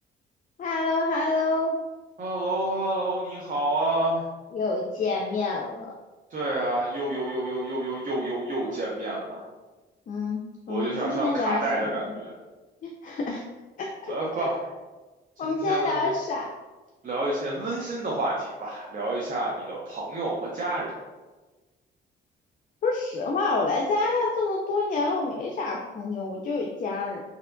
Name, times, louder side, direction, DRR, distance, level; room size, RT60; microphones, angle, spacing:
voice 1, 0.6-1.8 4.5-5.9 10.1-10.4 10.7-12.0 12.8-13.4 13.8-14.1 15.4-16.5 22.8-27.2, left 3 dB, 40° left, 0 dB, 0.4 m, -27 dB
voice 2, 2.2-4.3 6.3-9.5 10.7-12.3 14.1-14.6 15.6-16.0 17.0-20.9, right 1 dB, 40° right, -4 dB, 0.7 m, -29 dB
3.2 x 2.8 x 2.5 m, 1.2 s
cardioid pair, 90°, 20 cm